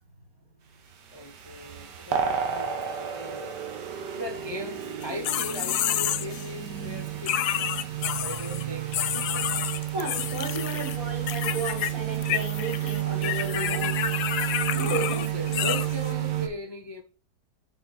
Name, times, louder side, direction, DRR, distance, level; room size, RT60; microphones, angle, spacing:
sound 1, 0.9-16.5, right 11 dB, 90° right, 1.8 m, -31 dB
voice 1, 1.1-3.6 4.1-7.4 8.2-9.7 10.4-10.9 14.7-17.0, left 1 dB, 35° left, 0.4 m, -38 dB
sound 2, 5.0-6.5 7.3-8.6 8.9-11.0 11.3-11.9 12.2-16.1, left 11 dB, 75° left, 1.1 m, -29 dB
voice 2, 9.9-15.3, right 3 dB, 55° right, 2.8 m, -34 dB
6.5 x 5.5 x 4.8 m
omnidirectional pair, 1.8 m